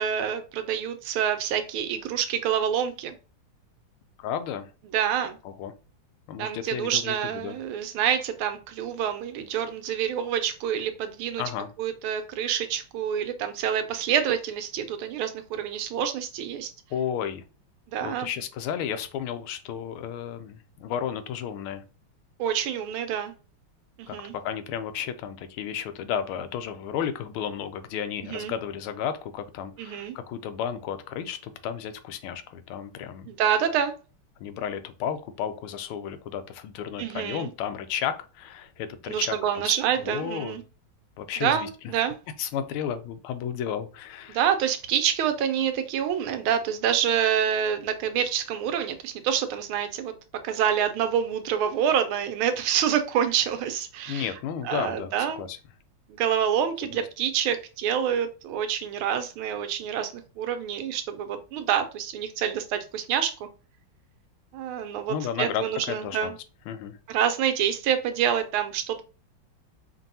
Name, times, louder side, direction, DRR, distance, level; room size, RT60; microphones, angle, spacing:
voice 1, 0.0-3.1 4.9-5.4 6.4-11.4 11.8-16.7 17.9-18.3 22.4-23.3 24.0-24.3 28.2-28.5 29.8-30.1 33.3-33.9 37.0-37.5 39.1-40.6 41.4-42.1 44.3-50.1 50.4-54.3 54.6-55.4 56.1-63.5 64.5-66.3 67.1-69.0, right 9 dB, 90° right, 8 dB, 1.5 m, -27 dB
voice 2, 4.2-4.7 5.4-5.7 6.3-7.6 11.4-11.7 16.9-17.4 18.0-21.8 24.1-33.3 34.4-39.4 39.6-39.7 40.0-40.6 41.2-41.7 42.4-44.4 54.1-55.6 56.8-56.9 65.1-66.3 66.7-67.0, left 8 dB, 85° left, 10 dB, 1.4 m, -33 dB
5.2 x 2.6 x 2.7 m, 0.34 s
omnidirectional pair, 2.3 m